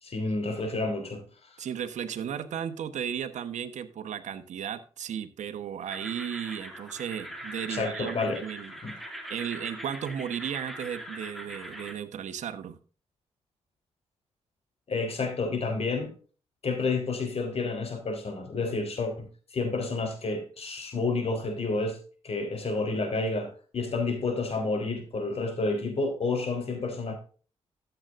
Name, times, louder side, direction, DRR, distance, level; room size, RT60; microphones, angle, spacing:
voice 1, 0.0-1.6 7.7-8.4 8.8-8.9 14.9-16.1 16.6-19.3 19.5-22.0 22.2-27.2, left 3 dB, 55° left, 3.8 m, -30 dB
voice 2, 1.6-8.7 9.3-12.8, right 8 dB, 75° right, 1.1 m, -35 dB
sound 1, 5.9-11.9, equal, ahead, 2.5 m, -41 dB
13.5 x 8.1 x 2.5 m
cardioid pair, 60°, 12 cm